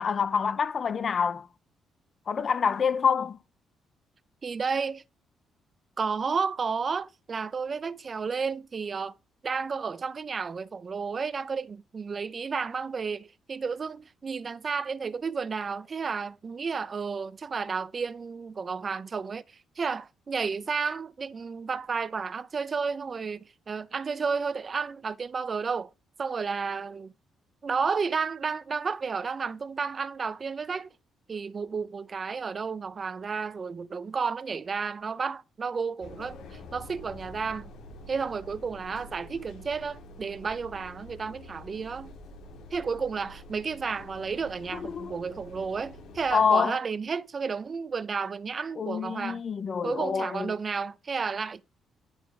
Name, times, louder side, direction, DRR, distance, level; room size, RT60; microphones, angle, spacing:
voice 1, 0.0-1.5 2.3-3.4 44.7-45.2 46.3-46.8 48.8-50.5, left 6 dB, 45° left, 0.7 m, -26 dB
voice 2, 4.4-5.0 6.0-9.1 9.4-25.9 26.2-27.1 27.6-30.9 31.3-37.7 38.1-42.1 42.7-49.4 49.8-51.6, right 5 dB, 40° right, 0.6 m, -32 dB
sound 1, 36.0-46.5, left 1 dB, 85° left, 2.0 m, -47 dB
9.8 x 5.2 x 4.8 m
cardioid pair, 90°, 0 cm